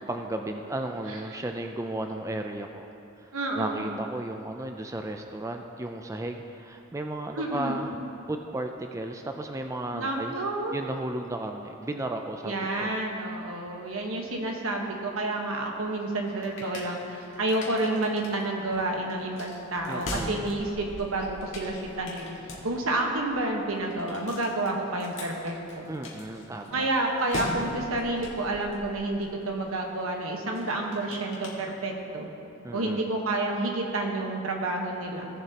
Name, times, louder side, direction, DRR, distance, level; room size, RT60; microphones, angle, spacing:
voice 1, 0.1-3.3 3.6-7.9 8.3-10.3 10.7-12.9 19.9-20.4 25.9-26.9 32.6-33.1, right 1 dB, 15° right, 4 dB, 0.4 m, -34 dB
voice 2, 1.1-1.4 3.3-3.9 7.3-7.8 9.9-10.8 12.4-22.3 22.6-25.9 26.7-32.3 32.7-35.3, right 2 dB, 80° right, 1 dB, 1.3 m, -30 dB
sound 1, 16.0-32.2, left 1 dB, 65° left, 1.7 m, -42 dB
17.0 x 7.3 x 2.9 m, 2.7 s
head